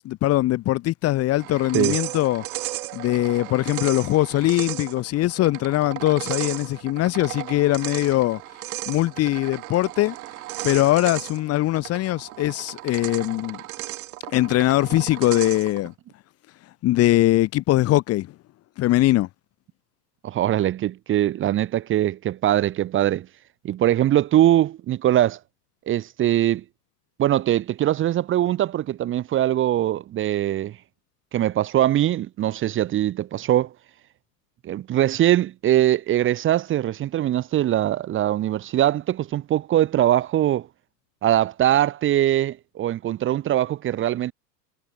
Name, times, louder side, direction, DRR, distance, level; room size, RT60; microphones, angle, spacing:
voice 1, 0.0-2.4 2.9-8.4 8.9-10.1 10.6-13.6 14.3-15.9 16.8-18.3 18.8-19.3, left 16 dB, 30° left, 2.1 m, -21 dB
sound 1, 1.4-15.9, right 17 dB, 60° right, 5.6 m, -35 dB
voice 2, 20.2-23.3 23.6-25.4 25.9-26.6 27.2-30.7 31.3-33.7 34.6-40.7 41.2-44.3, right 12 dB, 25° right, 1.8 m, -22 dB
hypercardioid pair, 130°, 48 cm